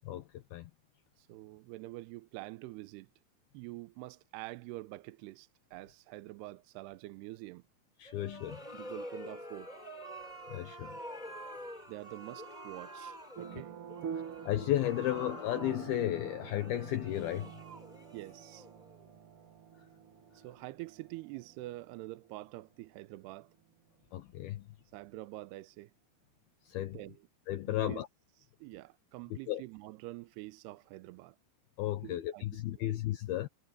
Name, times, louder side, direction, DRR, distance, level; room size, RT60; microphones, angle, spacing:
voice 1, 0.0-0.7 8.0-8.6 10.5-11.0 14.1-17.6 24.1-24.7 26.7-27.0 27.5-28.1 29.5-29.6 31.8-33.5, left 13 dB, 70° left, 2.6 m, -34 dB
voice 2, 1.2-3.1 3.5-7.6 8.7-9.7 11.9-13.7 18.1-18.7 20.3-23.6 24.9-25.9 26.9-27.2 27.8-28.0 28.6-31.4 32.0-32.4 32.8-33.0, right 19 dB, 85° right, 2.5 m, -46 dB
sound 1, 8.1-19.0, right 1 dB, 10° left, 3.3 m, -48 dB
sound 2, 13.3-24.1, right 8 dB, 65° right, 1.3 m, -47 dB
sound 3, 14.8-19.1 19.4-19.5, left 9 dB, 55° left, 2.8 m, -53 dB
omnidirectional pair, 5.0 m